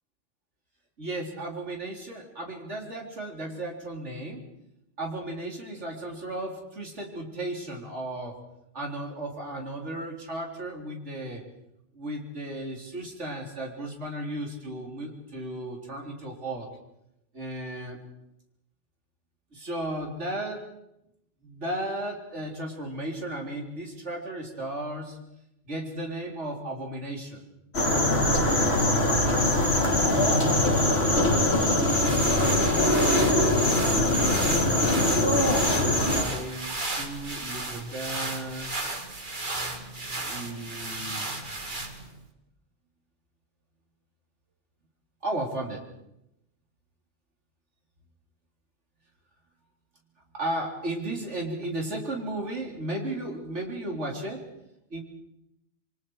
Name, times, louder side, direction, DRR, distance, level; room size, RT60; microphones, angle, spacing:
voice 1, 1.0-4.4 5.0-8.4 8.7-11.4 11.9-16.7 17.3-18.0 19.5-20.7 21.4-25.2 25.6-27.5 31.8-33.6 34.8-38.7 40.2-41.3 45.2-45.8 50.3-54.4 54.9-55.0, right 1 dB, 75° right, 0 dB, 4.3 m, -35 dB
sound 1, 27.7-36.2, left 1 dB, 60° left, 3.8 m, -22 dB
sound 2, 31.6-42.2, right 2 dB, 45° right, 2.3 m, -34 dB
28.0 x 24.0 x 4.9 m, 0.83 s
omnidirectional pair, 1.2 m